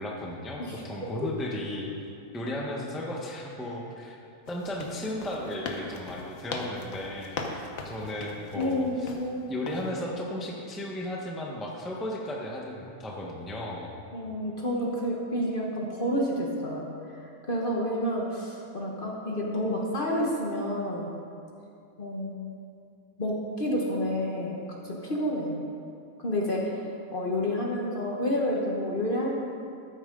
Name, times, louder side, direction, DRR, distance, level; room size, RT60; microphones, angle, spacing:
voice 1, 0.0-1.9 2.3-4.2 4.5-9.1 9.5-13.9, left 1 dB, ahead, -2 dB, 0.8 m, -35 dB
voice 2, 0.6-1.3 8.5-9.5 14.1-16.9 17.2-21.1 22.0-22.5 23.2-25.6 26.2-29.3, equal, 35° left, -2 dB, 1.2 m, -30 dB
sound 1, 4.5-9.3 9.7-9.9, left 3 dB, 60° left, 1.3 m, -39 dB
13.0 x 9.0 x 3.8 m, 2.5 s
omnidirectional pair, 1.7 m